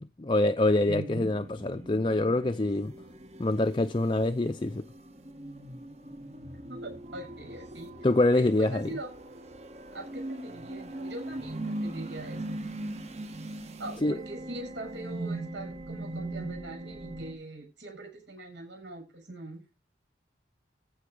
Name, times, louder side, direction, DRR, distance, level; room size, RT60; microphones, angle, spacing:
voice 1, 0.0-2.9 3.4-4.8 8.0-8.9 14.0-14.2, left 2 dB, 25° left, 0.6 m, -25 dB
voice 2, 0.9-1.3 6.7-7.9 8.3-9.1 9.9-12.6 13.8-19.6, right 2 dB, 75° right, 7.3 m, -42 dB
sound 1, 1.1-17.3, right 1 dB, 40° right, 1.4 m, -40 dB
14.5 x 6.2 x 5.0 m
head